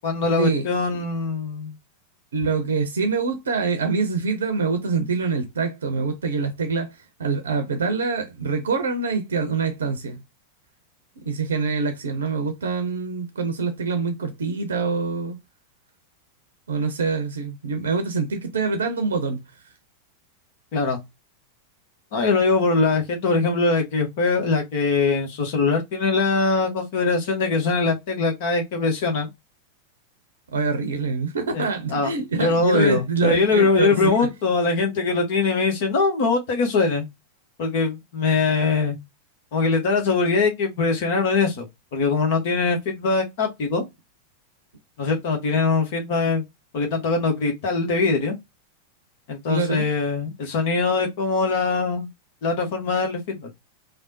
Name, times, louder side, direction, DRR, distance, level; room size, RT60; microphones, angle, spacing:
voice 1, 0.0-1.8 20.7-21.0 22.1-29.3 31.5-32.1 32.4-37.1 37.6-39.0 39.5-41.7 41.9-43.8 45.0-46.4 46.7-48.3 49.3-52.1 52.4-53.5, left 4 dB, 50° left, 0.9 m, -22 dB
voice 2, 2.3-10.2 11.2-15.4 16.7-19.4 30.5-34.3 49.5-49.8, right 4 dB, 65° right, 0.6 m, -25 dB
3.4 x 2.1 x 2.7 m
figure-of-eight pair, 90°, 0 cm